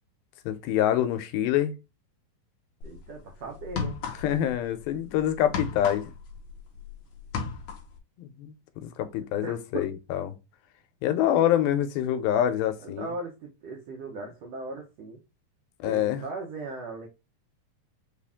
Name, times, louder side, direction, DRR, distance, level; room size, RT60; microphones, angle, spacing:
voice 1, 0.5-1.7 4.2-6.1 8.2-10.4 11.0-13.1 15.8-16.2, left 11 dB, 90° left, 2.5 m, -26 dB
sound 1, 2.8-3.0 3.6-4.5 4.8-6.9 7.2-8.0, left 6 dB, 70° left, 1.9 m, -33 dB
voice 2, 2.8-4.0 9.4-9.8 12.8-15.2 15.8-17.1, right 3 dB, 80° right, 1.4 m, -38 dB
5.7 x 2.5 x 3.5 m
omnidirectional pair, 4.1 m